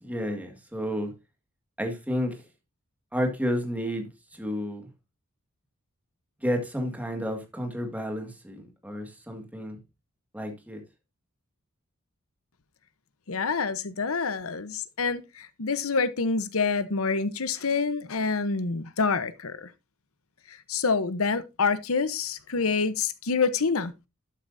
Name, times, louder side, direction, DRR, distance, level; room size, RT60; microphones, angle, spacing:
voice 1, 0.0-1.1 1.8-2.4 3.1-4.9 6.4-9.8 10.3-10.8, equal, 5° right, 1.9 m, -31 dB
voice 2, 13.3-19.7 20.5-23.9, left 4 dB, 70° left, 1.0 m, -27 dB
12.0 x 8.2 x 2.7 m
head